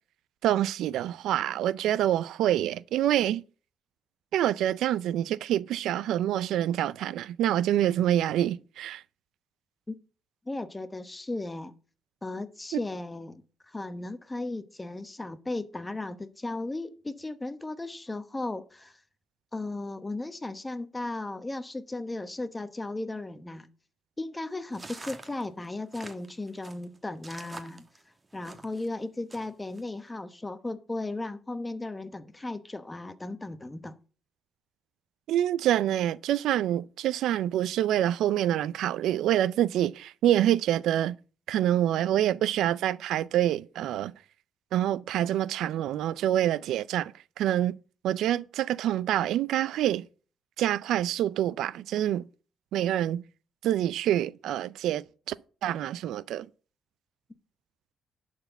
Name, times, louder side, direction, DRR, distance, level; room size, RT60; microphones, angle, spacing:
voice 1, 0.4-3.4 4.3-9.0 35.3-41.2 41.5-44.1 44.7-47.1 47.4-47.8 48.0-50.0 50.6-52.2 52.7-53.2 53.6-55.4 55.6-56.5, right 12 dB, 80° right, 0.4 m, -26 dB
voice 2, 10.5-11.7 12.2-19.0 19.5-23.7 24.2-27.8 28.3-33.9, left 2 dB, 15° left, 1.0 m, -36 dB
sound 1, 24.7-28.9 29.3-29.8, right 2 dB, 25° right, 1.3 m, -46 dB
11.5 x 4.2 x 6.8 m
cardioid pair, 90°, 0 cm